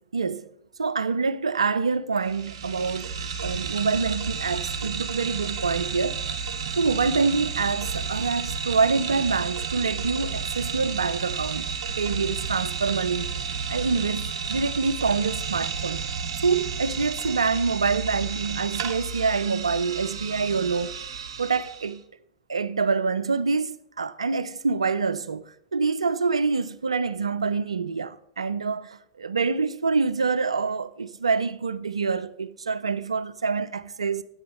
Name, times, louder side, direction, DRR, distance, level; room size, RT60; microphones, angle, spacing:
voice 1, 0.1-0.5 0.8-3.1 3.4-6.2 6.7-11.7 12.0-13.3 13.7-16.0 16.4-21.0 21.4-22.0 22.5-25.4 25.7-34.2, right 4 dB, 80° right, 0.5 m, -26 dB
sound 1, 2.2-21.9, right 5 dB, 60° right, 1.1 m, -32 dB
9.0 x 6.8 x 6.2 m
figure-of-eight pair, 95°, 3 cm